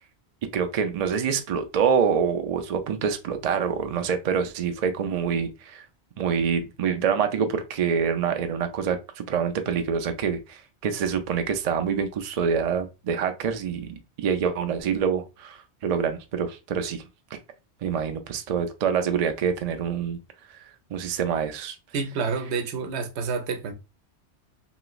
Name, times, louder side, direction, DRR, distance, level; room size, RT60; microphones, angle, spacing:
voice 1, 0.5-5.8 6.2-13.9 14.2-17.0 17.3-17.4 17.8-20.2 20.9-21.8, right 7 dB, 60° right, 0.4 m, -26 dB
voice 2, 21.9-23.7, right 5 dB, 75° right, 0.9 m, -28 dB
3.1 x 3.0 x 2.3 m
omnidirectional pair, 1.1 m